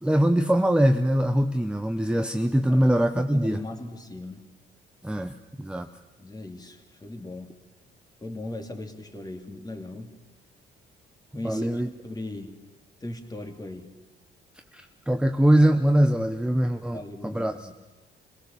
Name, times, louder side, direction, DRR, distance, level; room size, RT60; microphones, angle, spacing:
voice 1, 0.0-3.6 5.0-5.9 11.4-11.9 14.7-17.5, right 1 dB, 5° right, 6 dB, 0.9 m, -22 dB
voice 2, 3.1-4.4 6.2-7.5 8.2-10.2 11.3-12.5 13.0-13.9 16.9-17.7, left 1 dB, 20° left, 5 dB, 2.6 m, -38 dB
26.0 x 17.5 x 7.0 m, 1.2 s
cardioid pair, 90°, 20 cm